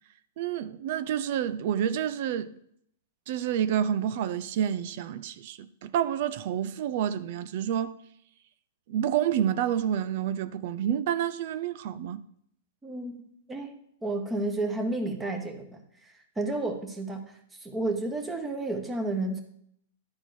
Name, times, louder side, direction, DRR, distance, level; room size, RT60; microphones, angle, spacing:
voice 1, 0.4-2.5 3.3-7.9 8.9-12.2, right 9 dB, 55° right, 0.5 m, -29 dB
voice 2, 12.8-13.2 13.5-13.7 14.0-19.4, right 2 dB, 10° right, 1.3 m, -32 dB
11.5 x 4.4 x 4.3 m
hypercardioid pair, 120°, 0 cm